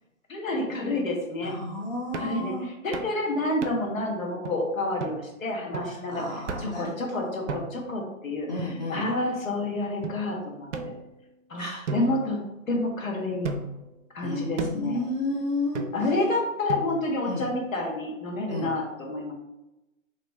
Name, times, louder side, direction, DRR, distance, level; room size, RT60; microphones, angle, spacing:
voice 1, 0.3-1.6 2.1-6.2 6.6-10.7 11.5-11.6 11.9-12.4 12.7-13.5 14.1-15.0 15.9-19.3, left 2 dB, 70° left, 0 dB, 1.2 m, -29 dB
voice 2, 1.4-2.7 5.9-7.3 8.5-9.1 11.6-11.8 14.2-15.8 17.3-17.4 18.5-18.7, left 2 dB, 35° left, -2 dB, 0.4 m, -32 dB
sound 1, 2.1-2.4 2.9-3.2 3.6-4.0 4.4-4.5 5.0-5.2 5.7-6.0 6.5-6.8 7.5-7.9 8.6-9.3 10.0-10.2 10.7-11.4 11.9-12.9 13.4-13.9 14.6-14.9 15.7-16.2 16.7-17.2, right 3 dB, 60° right, 0.5 m, -35 dB
4.0 x 2.9 x 2.3 m, 0.96 s
figure-of-eight pair, 135°, 41 cm